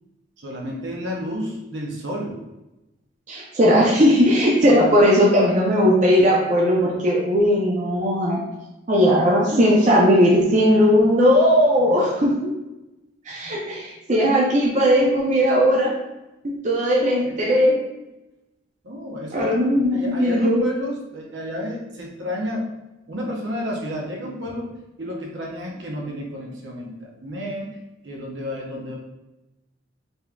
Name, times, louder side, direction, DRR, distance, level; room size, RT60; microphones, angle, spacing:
voice 1, 0.4-2.4 16.9-17.5 18.8-19.6 19.9-22.7 23.1-24.7 25.0-27.7 28.0-29.0, equal, 65° right, -2 dB, 0.8 m, -31 dB
voice 2, 3.3-8.4 8.9-12.3 13.3-15.9 16.6-17.8 19.3-20.6, equal, 40° right, -4 dB, 0.6 m, -18 dB
4.1 x 3.5 x 2.3 m, 0.98 s
head